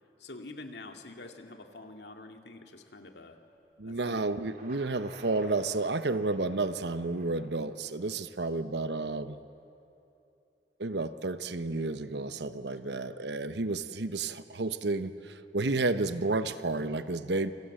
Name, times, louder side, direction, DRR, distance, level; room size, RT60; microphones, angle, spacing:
voice 1, 0.2-3.4 3.8-4.3 12.8-13.0, left 2 dB, 75° left, 4 dB, 2.3 m, -46 dB
voice 2, 3.8-9.4 10.8-17.5, right 3 dB, 80° right, 11 dB, 1.0 m, -31 dB
Thunder, 4.4-8.2, right 2 dB, 50° right, 3.6 m, -55 dB
28.0 x 25.5 x 7.8 m, 2.9 s
head